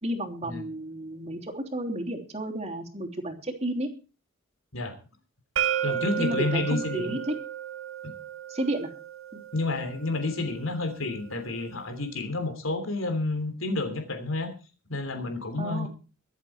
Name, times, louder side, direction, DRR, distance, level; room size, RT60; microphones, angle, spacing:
voice 1, 0.0-3.9 6.2-7.3 8.5-8.9 9.3-9.4 15.6-15.9, right 1 dB, 30° right, 1 dB, 3.1 m, -32 dB
sound 1, 5.6-11.4, right 10 dB, 80° right, 1.6 m, -34 dB
voice 2, 5.8-7.2 8.0-8.1 9.5-14.5 14.9-15.9, left 2 dB, 75° left, 7 dB, 3.2 m, -30 dB
24.0 x 8.1 x 4.6 m, 0.34 s
head